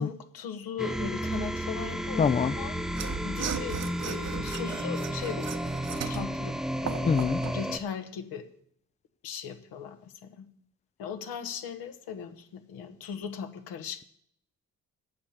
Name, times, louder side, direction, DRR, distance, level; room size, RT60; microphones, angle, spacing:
voice 1, 0.0-3.0 3.2-5.6 6.1-6.6 6.8-7.2 7.5-8.4 9.2-10.5 11.0-14.0, left 7 dB, 75° left, 1.3 m, -38 dB
sound 1, 0.8-7.8, equal, ahead, 0.8 m, -32 dB
voice 2, 2.2-2.5 7.0-7.4, left 6 dB, 20° left, 0.4 m, -24 dB
Mechanisms / Sawing, 2.9-7.6, right 7 dB, 45° right, 1.0 m, -37 dB
8.8 x 7.0 x 7.3 m
hypercardioid pair, 40°, 37 cm